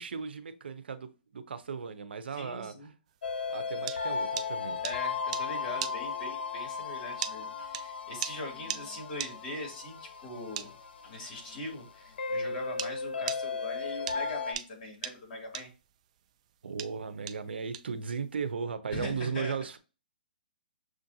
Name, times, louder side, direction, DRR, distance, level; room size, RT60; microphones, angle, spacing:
voice 1, 0.0-2.7 3.5-4.8 16.6-19.8, right 5 dB, 90° right, 0.6 m, -36 dB
voice 2, 2.3-2.9 4.8-10.7 11.0-15.7 18.9-19.6, left 2 dB, 40° left, 2.5 m, -41 dB
sound 1, 3.2-14.5, left 5 dB, 75° left, 0.9 m, -36 dB
sound 2, 3.3-12.9 13.3-18.5, right 10 dB, 40° right, 0.3 m, -39 dB
6.3 x 2.5 x 2.7 m
hypercardioid pair, 160°, 6 cm